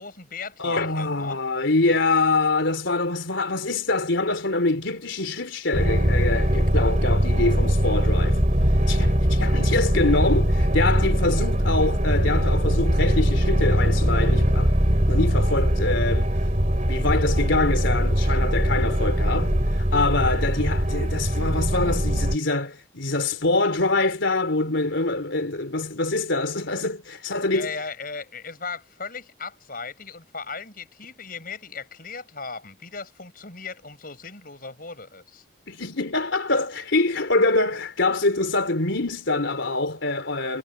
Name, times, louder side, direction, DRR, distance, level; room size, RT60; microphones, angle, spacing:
voice 1, 0.0-1.4 27.5-35.4, left 4 dB, 45° left, 6.2 m, -37 dB
voice 2, 0.6-8.4 8.9-14.7 15.1-16.3 16.9-27.7 35.7-40.6, left 2 dB, 70° left, 3.5 m, -25 dB
sound 1, 5.7-22.4, equal, 35° right, 3.4 m, -21 dB
head